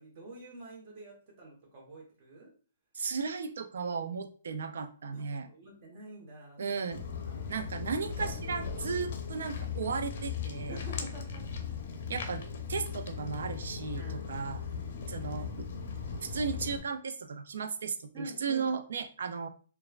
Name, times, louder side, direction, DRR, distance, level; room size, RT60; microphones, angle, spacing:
voice 1, 0.0-2.5 5.1-6.8 7.2-7.5 10.7-11.4 14.0-14.3 14.7-15.2 18.1-18.7, right 2 dB, 40° right, -2 dB, 1.1 m, -47 dB
voice 2, 2.9-5.5 6.6-7.1 7.5-10.8 12.1-14.6 15.1-15.7 16.2-19.5, right 5 dB, 75° right, 9 dB, 0.3 m, -35 dB
Walk footsteps, 6.9-16.8, left 6 dB, 55° left, 0.5 m, -38 dB
2.9 x 2.3 x 2.4 m, 0.39 s
hypercardioid pair, 155°, 0 cm